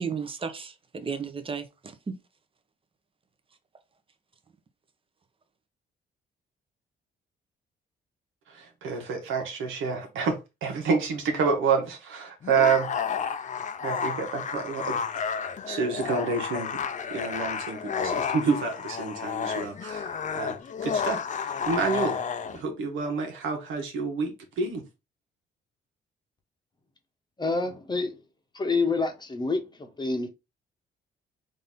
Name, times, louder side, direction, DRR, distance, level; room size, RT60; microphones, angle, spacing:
voice 1, 0.0-2.2, right 5 dB, 25° right, 0.8 m, -34 dB
voice 2, 8.5-12.9 13.8-15.3 15.7-16.7 17.1-20.6 20.8-22.2 22.5-24.9, right 5 dB, 85° right, 1.2 m, -28 dB
sound 1, 12.4-22.6, left 6 dB, 40° left, 0.5 m, -31 dB
voice 3, 27.4-28.1 28.5-30.3, left 3 dB, 20° left, 0.9 m, -27 dB
4.0 x 2.7 x 3.5 m
cardioid pair, 90°, 20 cm